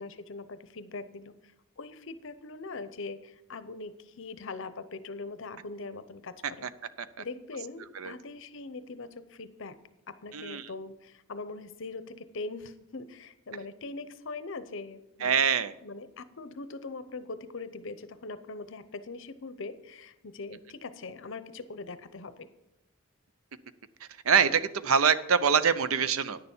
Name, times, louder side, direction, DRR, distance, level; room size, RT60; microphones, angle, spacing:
voice 1, 0.0-6.7 7.2-9.8 10.1-15.5 15.8-22.5, left 3 dB, 65° left, 13 dB, 0.7 m, -41 dB
voice 2, 10.3-10.7 15.2-15.7 24.2-26.4, right 6 dB, 80° right, 14 dB, 0.6 m, -24 dB
10.0 x 6.8 x 7.2 m, 0.91 s
head